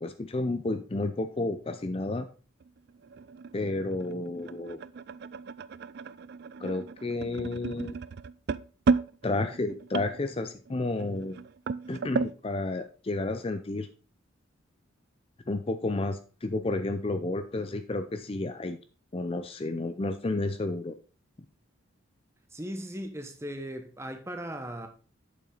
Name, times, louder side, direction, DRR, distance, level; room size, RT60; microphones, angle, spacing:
voice 1, 0.0-2.3 3.5-4.8 6.6-8.0 9.2-11.4 11.9-13.9 15.5-18.8 19.1-21.0, left 2 dB, 30° left, 0.5 m, -31 dB
sound 1, 2.6-12.4, right 4 dB, 50° right, 0.3 m, -34 dB
voice 2, 22.5-24.9, equal, 15° right, 1.0 m, -38 dB
8.5 x 7.1 x 3.9 m
head